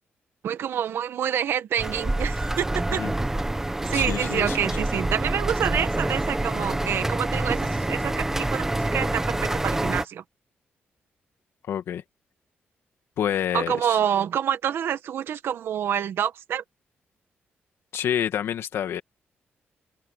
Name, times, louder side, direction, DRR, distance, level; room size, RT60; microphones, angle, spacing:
voice 1, 0.4-3.0 3.9-10.2 13.5-16.6, right 9 dB, 75° right, 1.7 m, -27 dB
sound 1, 1.8-10.1, right 1 dB, 10° right, 1.0 m, -27 dB
voice 2, 3.9-4.6 11.7-12.0 13.2-14.0 17.9-19.0, left 9 dB, 85° left, 2.2 m, -28 dB
open air
cardioid pair, 135°, 4 cm